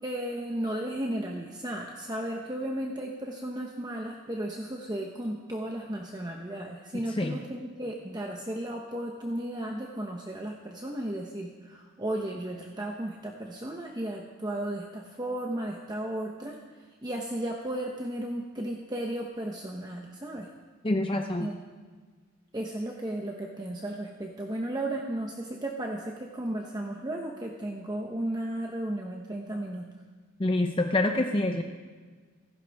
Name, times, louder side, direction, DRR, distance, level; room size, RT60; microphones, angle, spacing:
voice 1, 0.0-16.6 17.0-20.5 21.4-21.5 22.5-29.9, right 1 dB, 20° right, 0 dB, 1.0 m, -34 dB
voice 2, 20.8-21.5 30.4-31.6, left 2 dB, 25° left, 4 dB, 0.6 m, -26 dB
27.5 x 11.5 x 3.5 m, 1.5 s
head